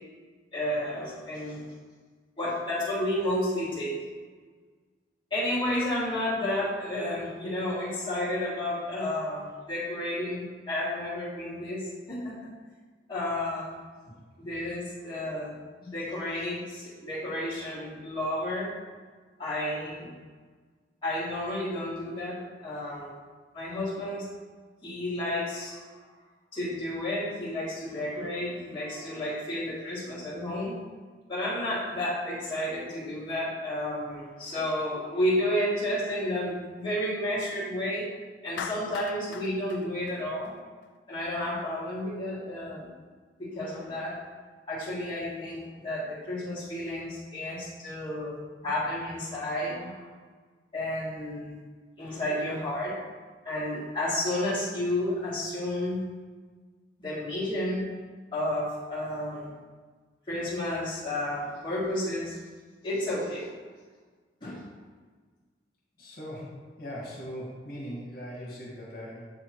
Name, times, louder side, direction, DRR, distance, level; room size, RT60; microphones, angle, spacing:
voice 1, 0.5-1.6 2.4-3.9 5.3-12.3 13.1-13.8 14.4-15.6 15.8-18.7 19.4-20.1 21.0-23.1 23.5-24.3 24.8-25.8 26.5-30.7 31.3-38.1 38.4-40.5 41.1-42.9 43.4-44.2 44.7-50.1 50.7-51.6 52.0-52.9 53.4-56.0 57.0-57.8 58.3-59.5 60.3-62.4 62.8-63.5 64.4-64.6, left 1 dB, 25° left, -9 dB, 1.7 m, -31 dB
Clapping, 38.6-40.9, left 7 dB, 85° left, 0.3 m, -40 dB
voice 2, 66.0-69.2, equal, 55° left, -5 dB, 1.7 m, -40 dB
7.1 x 3.4 x 4.4 m, 1.5 s
head